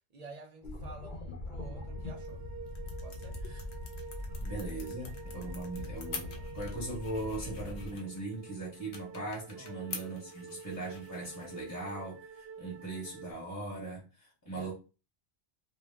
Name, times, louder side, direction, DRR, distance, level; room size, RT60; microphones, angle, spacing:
voice 1, 0.1-2.4 3.0-3.4 4.3-4.4 9.5-9.8 14.5-14.7, right 3 dB, 45° right, 0.6 m, -51 dB
sound 1, 0.6-8.0, left 1 dB, 55° left, 0.7 m, -42 dB
sound 2, 1.6-13.3, right 5 dB, 90° right, 0.9 m, -48 dB
sound 3, 2.1-13.6, left 5 dB, 85° left, 0.9 m, -49 dB
voice 2, 4.4-14.7, right 2 dB, 20° left, 0.8 m, -40 dB
2.2 x 2.1 x 3.4 m
omnidirectional pair, 1.1 m